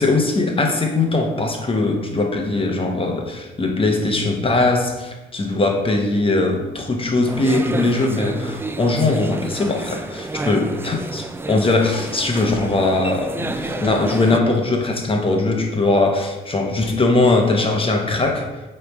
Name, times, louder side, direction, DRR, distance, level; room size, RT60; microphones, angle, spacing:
voice 1, 0.0-18.5, left 2 dB, 25° left, 2 dB, 0.9 m, -20 dB
sound 1, 7.3-14.4, right 2 dB, 10° right, 0.3 m, -30 dB
8.4 x 3.2 x 3.5 m, 1.1 s
cardioid pair, 90°, 20 cm